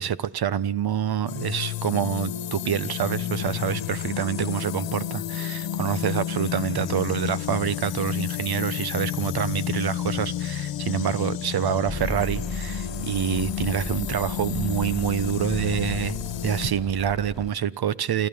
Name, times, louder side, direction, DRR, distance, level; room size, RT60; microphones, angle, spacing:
voice 1, 0.0-16.2 16.4-18.3, right 9 dB, 55° right, 1.2 m, -27 dB
sound 1, 1.3-16.7, left 11 dB, 75° left, 1.4 m, -31 dB
sound 2, 11.8-17.5, left 1 dB, ahead, 3.3 m, -36 dB
30.0 x 13.5 x 7.1 m
supercardioid pair, 65°, 45 cm